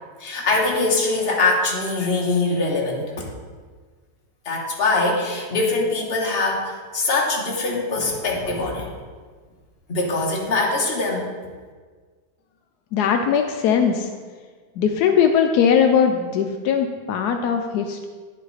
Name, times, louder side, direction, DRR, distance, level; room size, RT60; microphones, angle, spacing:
voice 1, 0.2-3.3 4.4-8.9 9.9-11.3, left 3 dB, 40° left, -2 dB, 1.4 m, -23 dB
voice 2, 12.9-14.1 14.8-18.1, left 7 dB, 80° left, 5 dB, 1.1 m, -20 dB
9.9 x 5.3 x 4.1 m, 1.5 s
omnidirectional pair, 1.7 m